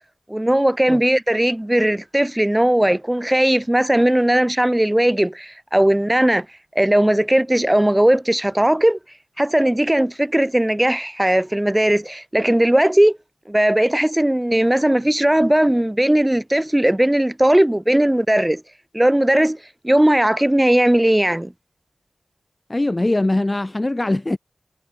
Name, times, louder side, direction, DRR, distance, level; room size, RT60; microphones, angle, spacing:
voice 1, 0.3-6.5 6.8-9.0 9.4-13.2 13.5-18.6 18.9-19.6 19.8-21.5, right 1 dB, 15° right, 4.0 m, -18 dB
voice 2, 22.7-24.4, left 2 dB, 30° left, 2.4 m, -21 dB
wide cardioid pair, 65°, 0 cm